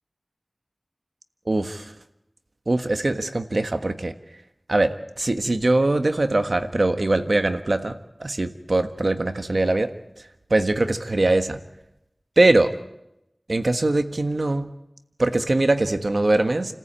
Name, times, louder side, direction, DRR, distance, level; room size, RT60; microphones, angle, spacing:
voice 1, 1.5-1.9 2.7-4.1 4.7-9.9 10.5-11.6 12.4-12.7 13.5-14.7 15.2-16.7, right 2 dB, 65° right, 8 dB, 1.4 m, -22 dB
29.5 x 14.5 x 8.8 m, 0.88 s
wide cardioid pair, 50°, 0 cm